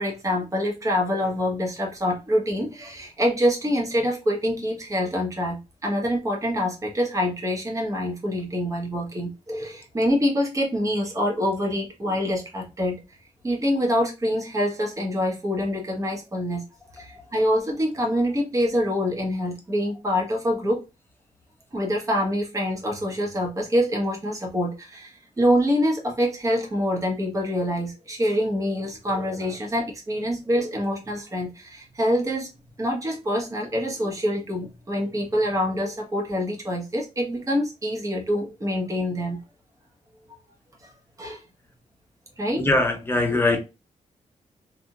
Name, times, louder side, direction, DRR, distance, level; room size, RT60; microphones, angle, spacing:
voice 1, 0.0-13.2 13.4-16.6 16.9-20.8 21.7-32.5 32.8-39.4 40.8-40.9 41.2-41.4 42.4-42.7 43.3-43.4, equal, 25° right, 1.2 m, -25 dB
voice 2, 42.5-43.6, left 2 dB, 15° left, 0.9 m, -22 dB
3.5 x 2.8 x 2.3 m
cardioid pair, 110°, 13 cm